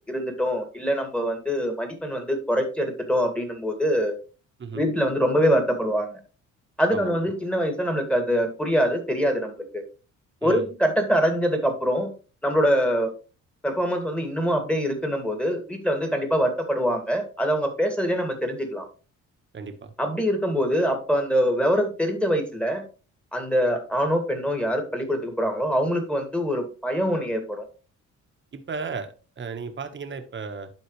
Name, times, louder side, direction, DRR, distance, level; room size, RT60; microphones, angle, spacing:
voice 1, 0.1-4.2 4.7-6.2 6.8-9.8 10.4-12.1 12.4-13.1 13.6-18.9 20.0-22.8 23.3-27.7, equal, 5° left, 5 dB, 2.2 m, -24 dB
voice 2, 6.9-7.3 10.4-10.7 19.5-19.9 28.5-30.7, right 5 dB, 40° right, 7 dB, 1.4 m, -35 dB
11.5 x 4.3 x 3.2 m, 0.34 s
cardioid pair, 90°, 30 cm